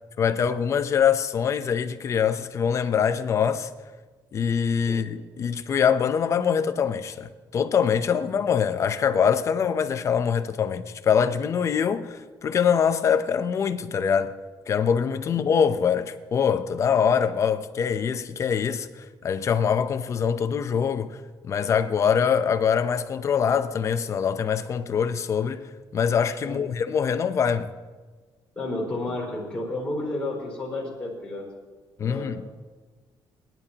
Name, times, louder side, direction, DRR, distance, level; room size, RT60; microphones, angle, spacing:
voice 1, 0.2-3.7 4.3-14.3 14.7-21.2 21.4-25.6 25.9-27.7 32.0-32.4, left 7 dB, 35° left, 0.7 m, -24 dB
voice 2, 28.5-31.5 32.0-32.4, left 2 dB, 10° left, 4.5 m, -31 dB
22.5 x 11.0 x 2.9 m
cardioid pair, 160°, 8 cm